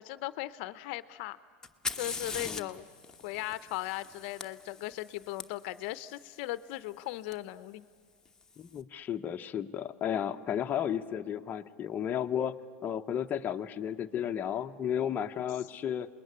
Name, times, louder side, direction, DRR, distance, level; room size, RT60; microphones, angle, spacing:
voice 1, 0.0-1.4 2.0-2.9 3.2-7.8, left 16 dB, 60° left, 15 dB, 0.7 m, -38 dB
Fire, 1.6-5.4 7.3-7.4 8.2-8.7, left 4 dB, 10° left, 1.1 m, -41 dB
voice 2, 8.6-16.1, left 9 dB, 25° left, 5 dB, 0.7 m, -33 dB
27.0 x 20.5 x 9.8 m, 2.1 s
supercardioid pair, 130°, 7 cm